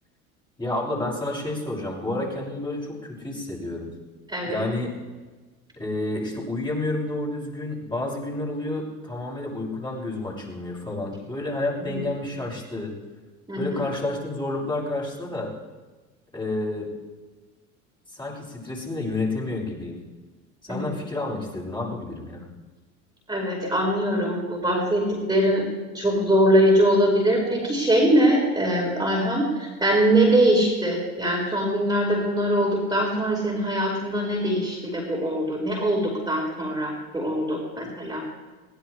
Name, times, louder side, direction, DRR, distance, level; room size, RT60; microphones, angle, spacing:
voice 1, 0.6-3.9 4.5-4.9 5.8-12.9 13.6-15.5 16.3-16.9 18.1-20.0 20.6-22.5, left 2 dB, 10° left, -4 dB, 6.3 m, -30 dB
voice 2, 4.3-4.6 11.9-12.0 13.5-13.8 20.7-20.9 23.3-25.7 25.9-38.2, right 1 dB, 10° right, -3 dB, 5.1 m, -22 dB
21.5 x 17.5 x 3.4 m, 1.3 s
hypercardioid pair, 75°, 41 cm